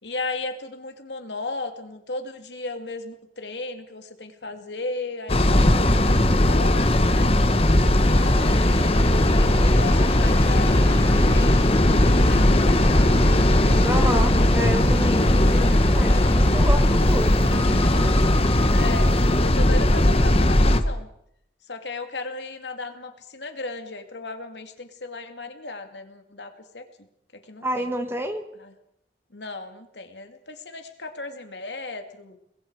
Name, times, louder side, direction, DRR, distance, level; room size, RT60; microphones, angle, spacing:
voice 1, 0.0-7.3 8.1-8.6 9.3-13.3 18.7-19.1 19.4-21.1 21.7-26.9 27.3-27.9 28.6-28.7 29.3-32.4, left 3 dB, 85° left, 6 dB, 2.5 m, -35 dB
sound 1, 5.3-20.8, left 1 dB, 35° left, 1.4 m, -18 dB
sound 2, 8.0-19.5, left 1 dB, 15° left, 1.0 m, -34 dB
voice 2, 13.8-18.1 27.6-28.4, equal, 15° right, 7 dB, 1.8 m, -30 dB
29.5 x 21.0 x 4.9 m, 0.74 s
head